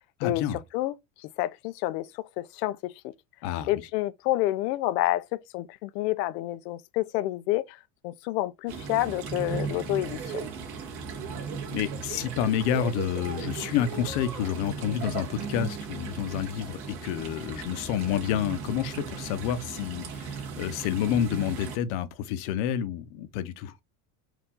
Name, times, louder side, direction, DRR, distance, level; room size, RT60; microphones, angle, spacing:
voice 1, 0.2-0.6 3.4-3.7 11.7-23.7, left 9 dB, 55° left, 0.8 m, -29 dB
voice 2, 1.4-2.1 2.4-2.9 3.7-7.8 8.0-10.4, left 16 dB, 85° left, 0.6 m, -28 dB
sound 1, 8.7-21.8, right 5 dB, 50° right, 1.6 m, -36 dB
4.6 x 2.6 x 3.7 m
supercardioid pair, 160°, 48 cm